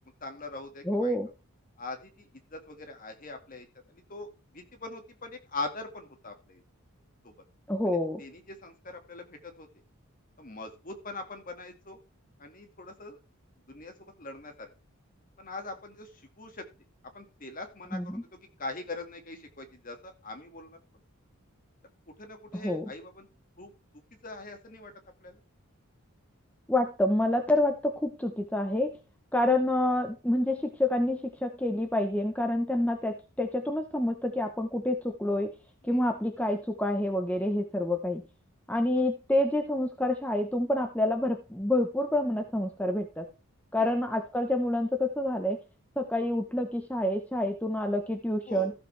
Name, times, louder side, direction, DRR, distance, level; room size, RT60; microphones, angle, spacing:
voice 1, 0.2-1.2 1.8-3.7 3.9-6.6 7.2-7.3 7.9-9.7 10.4-12.0 12.4-13.2 13.7-14.7 15.4-16.7 17.1-20.8 22.2-23.3 23.6-23.7 24.2-24.9 25.2-25.4 35.9-36.0 43.8-43.9 48.5-48.7, left 2 dB, 40° left, 5 dB, 2.0 m, -42 dB
voice 2, 0.9-1.3 7.7-8.2 17.9-18.2 22.5-22.8 26.7-28.9 29.3-35.5 35.8-38.2 38.7-43.3 43.7-45.6 46.0-48.7, left 1 dB, 5° left, 4 dB, 0.9 m, -28 dB
14.5 x 7.4 x 3.4 m, 0.31 s
head